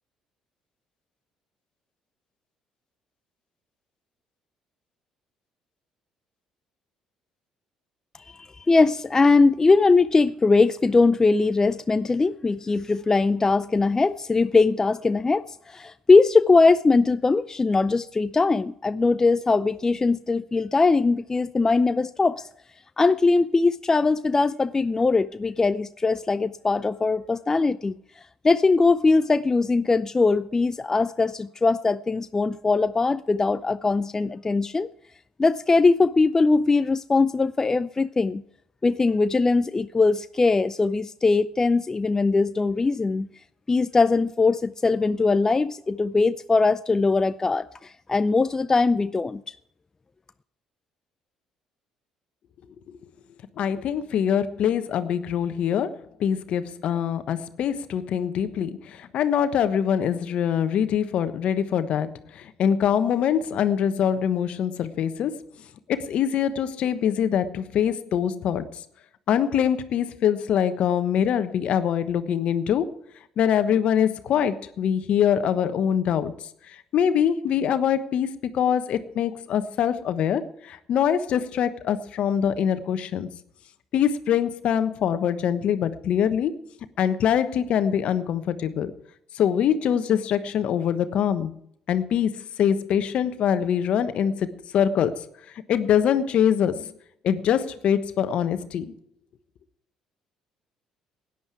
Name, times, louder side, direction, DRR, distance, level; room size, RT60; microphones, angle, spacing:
voice 1, 8.4-22.4 23.0-27.9 28.4-34.9 35.4-38.4 38.8-43.3 43.7-49.5, left 3 dB, 25° left, 0.5 m, -21 dB
voice 2, 53.6-55.9 56.2-65.3 65.9-68.8 69.3-72.9 73.4-76.3 76.7-83.3 83.9-86.5 87.0-88.9 89.3-91.5 91.9-92.3 92.6-95.2 95.7-96.9 97.2-98.9, left 9 dB, 60° left, 1.2 m, -24 dB
17.0 x 10.0 x 4.7 m
hypercardioid pair, 55°, 2 cm